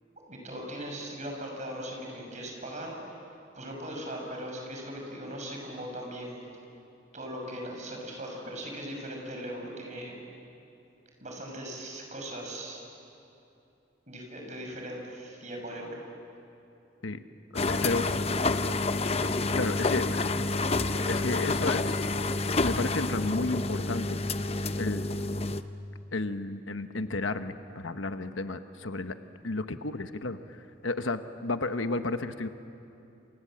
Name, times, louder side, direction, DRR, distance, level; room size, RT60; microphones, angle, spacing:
voice 1, 0.3-3.2 3.5-6.5 7.1-10.2 11.2-12.8 14.1-16.1, equal, 35° right, 1 dB, 6.1 m, -39 dB
voice 2, 17.5-18.0 19.5-20.4 21.1-22.0 22.6-24.2 24.8-25.1 26.1-29.2 29.4-30.4 30.8-32.5, left 2 dB, 75° left, 9 dB, 1.1 m, -32 dB
sound 1, 17.5-25.6, left 3 dB, 30° left, 0.7 m, -28 dB
28.0 x 27.5 x 7.6 m, 2.8 s
head